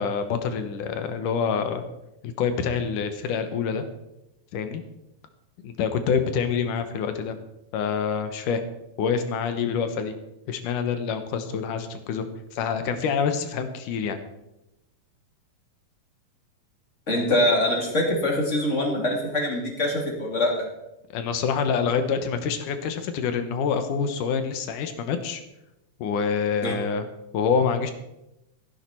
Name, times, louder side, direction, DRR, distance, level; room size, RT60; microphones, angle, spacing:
voice 1, 0.0-1.9 2.2-3.9 4.5-4.8 5.6-7.4 7.7-8.6 9.0-10.2 10.5-12.2 12.5-14.2 21.1-25.4 26.0-27.1 27.3-27.9, left 6 dB, 75° left, 9 dB, 2.5 m, -26 dB
voice 2, 17.1-20.6 26.6-26.7, left 1 dB, 20° left, 0 dB, 2.6 m, -24 dB
14.5 x 11.5 x 4.5 m, 0.89 s
omnidirectional pair, 4.0 m